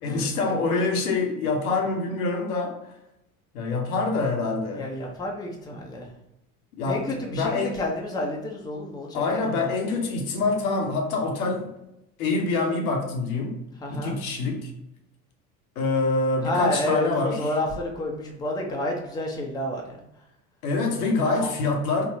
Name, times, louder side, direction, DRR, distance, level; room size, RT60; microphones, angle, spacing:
voice 1, 0.0-2.8 3.5-4.9 6.7-7.8 9.1-11.7 12.2-13.6 13.9-14.7 15.8-17.4 20.6-22.1, left 3 dB, 75° left, 0.8 m, -25 dB
voice 2, 4.7-6.1 6.8-9.7 13.8-14.2 16.4-20.0 21.4-21.5, left 1 dB, 10° left, 0.5 m, -30 dB
3.6 x 2.1 x 2.6 m
hypercardioid pair, 75°, 43 cm